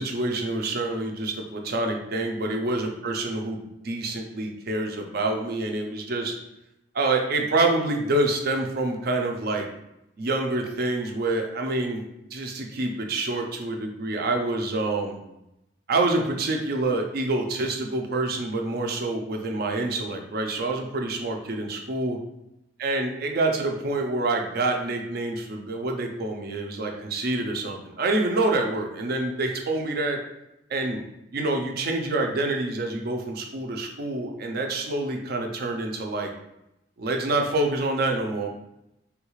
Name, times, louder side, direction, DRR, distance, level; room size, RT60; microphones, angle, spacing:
voice 1, 0.0-6.3 6.9-9.6 10.2-12.0 12.3-15.2 15.9-22.2 22.8-30.2 30.7-31.0 31.3-36.3 37.0-38.5, right 2 dB, 60° right, 2 dB, 0.5 m, -27 dB
3.4 x 2.4 x 3.0 m, 0.86 s
head